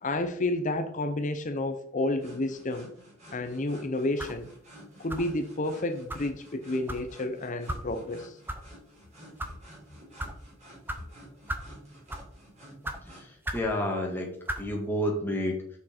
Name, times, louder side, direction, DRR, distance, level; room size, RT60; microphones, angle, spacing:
voice 1, 0.0-2.9 3.3-4.5 5.0-8.4, left 2 dB, 35° left, 9 dB, 0.6 m, -30 dB
sound 1, 2.2-13.3, right 1 dB, 35° right, 3.9 m, -52 dB
sound 2, 4.2-4.4 5.1-5.4 6.1-6.3 6.9-7.0 7.7-7.8 8.5-8.6 9.2-9.5 10.2-10.3 10.9-11.0 11.5-11.7 12.1-12.3 12.8-13.0 13.4-13.7 14.4-14.6, right 1 dB, 10° right, 0.7 m, -35 dB
voice 2, 13.0-14.3 14.6-15.6, equal, 10° left, -1 dB, 1.6 m, -30 dB
7.1 x 6.4 x 4.3 m, 0.64 s
head